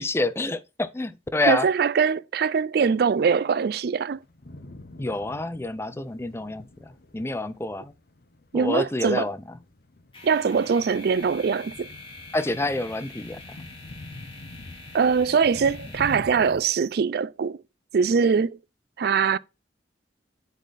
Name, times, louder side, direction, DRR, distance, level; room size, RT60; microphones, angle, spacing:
voice 1, 0.0-1.7 5.0-6.6 7.1-7.9 8.5-9.4 12.3-13.6, left 2 dB, 15° left, 0.5 m, -27 dB
voice 2, 1.4-4.2 8.5-9.3 10.2-11.9 14.9-17.6 17.9-18.6 19.0-19.4, right 6 dB, 60° right, 0.4 m, -22 dB
sound 1, 4.1-16.6, left 2 dB, 60° left, 0.9 m, -45 dB
sound 2, 10.1-16.9, left 3 dB, 30° left, 3.1 m, -46 dB
8.1 x 4.0 x 4.1 m
head